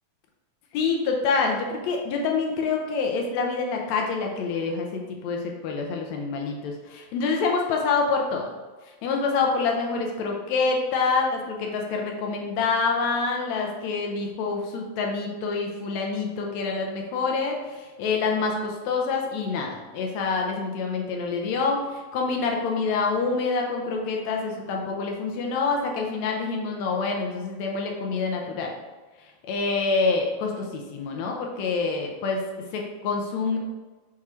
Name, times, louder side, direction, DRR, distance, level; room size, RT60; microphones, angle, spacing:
voice 1, 0.7-8.5 9.0-28.7 29.5-32.4 32.7-33.6, left 4 dB, 75° left, 1 dB, 1.6 m, -26 dB
6.2 x 3.6 x 4.3 m, 1.3 s
omnidirectional pair, 3.9 m